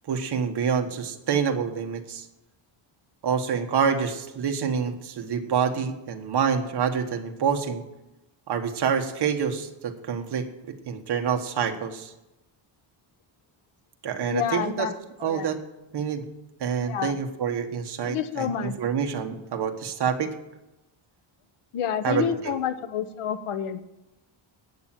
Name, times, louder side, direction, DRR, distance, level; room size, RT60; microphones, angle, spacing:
voice 1, 0.1-2.3 3.2-7.8 8.5-10.5 10.8-12.1 14.0-14.9 15.2-15.6 15.9-16.2 16.6-20.3 22.0-22.5, right 7 dB, 55° right, 5 dB, 1.4 m, -27 dB
voice 2, 14.3-14.9 15.2-15.5 16.8-17.2 18.1-18.7 21.7-23.9, left 8 dB, 90° left, 10 dB, 1.1 m, -29 dB
12.0 x 8.8 x 7.5 m, 0.96 s
wide cardioid pair, 175°, 49 cm